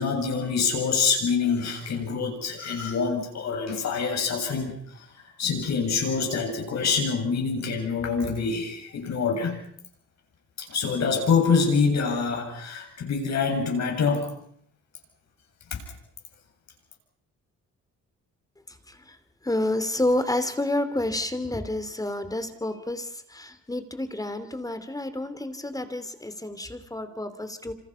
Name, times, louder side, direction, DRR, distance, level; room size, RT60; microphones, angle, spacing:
voice 1, 0.0-5.0 5.4-9.6 10.6-14.3 15.7-15.8, left 5 dB, 60° left, 2 dB, 7.8 m, -26 dB
voice 2, 18.7-19.2 19.4-27.7, left 1 dB, 10° left, 10 dB, 2.9 m, -29 dB
27.5 x 26.5 x 5.8 m, 0.66 s
cardioid pair, 90°, 30 cm